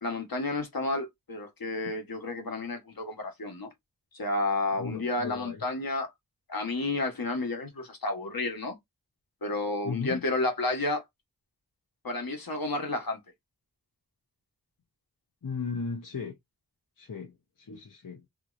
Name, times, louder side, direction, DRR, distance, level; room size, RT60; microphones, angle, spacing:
voice 1, 0.0-3.7 4.1-6.1 6.5-8.8 9.4-11.0 12.0-13.2, left 2 dB, 80° left, 1.3 m, -31 dB
voice 2, 4.8-5.6 9.8-10.2 15.4-16.3 17.0-18.2, left 5 dB, 65° left, 0.9 m, -36 dB
3.1 x 2.5 x 3.1 m
wide cardioid pair, 55°, 34 cm